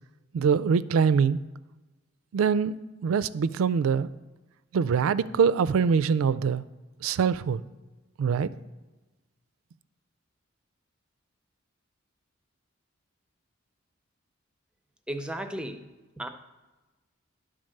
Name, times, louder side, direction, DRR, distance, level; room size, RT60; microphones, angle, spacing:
voice 1, 0.3-1.4 2.3-4.1 4.7-6.6 7.0-7.6 8.2-8.5, right 6 dB, 85° right, 15 dB, 0.3 m, -24 dB
voice 2, 15.1-15.8 16.2-16.3, right 1 dB, 5° right, 8 dB, 0.5 m, -34 dB
10.5 x 3.8 x 6.5 m, 1.2 s
head